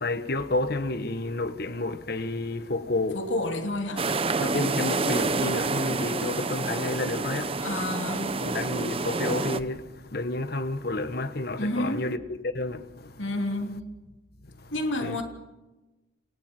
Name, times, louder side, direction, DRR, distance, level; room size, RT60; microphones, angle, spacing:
voice 1, 0.0-3.2 4.4-7.6 8.4-13.1 15.0-15.2, left 2 dB, 55° left, 1.5 m, -30 dB
voice 2, 3.1-4.1 7.6-8.4 11.6-12.1 13.2-13.8 14.7-15.2, left 1 dB, 90° left, 2.9 m, -30 dB
sound 1, 4.0-9.6, right 3 dB, 30° right, 0.9 m, -28 dB
29.5 x 28.5 x 4.6 m
head